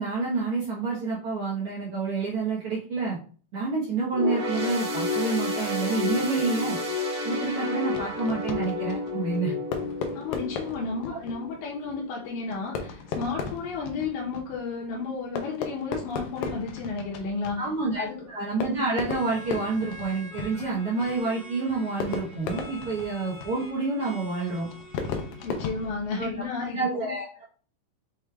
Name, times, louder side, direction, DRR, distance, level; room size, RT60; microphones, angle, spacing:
voice 1, 0.0-3.2 3.5-6.8 7.2-9.5 11.1-11.2 17.6-24.7 26.2-26.3 26.7-27.2, right 3 dB, 80° right, -6 dB, 1.2 m, -28 dB
sound 1, 4.1-11.8 12.2-12.4 13.3-13.4, left 3 dB, 55° right, 1.4 m, -30 dB
Fireworks, 7.9-26.7, left 5 dB, 90° left, 1.6 m, -37 dB
voice 2, 10.1-17.7 18.0-18.3 25.4-27.1, left 4 dB, 75° left, -3 dB, 1.9 m, -32 dB
sound 2, 19.0-25.9, equal, 35° left, 0.9 m, -46 dB
6.3 x 3.2 x 2.2 m, 0.42 s
omnidirectional pair, 4.0 m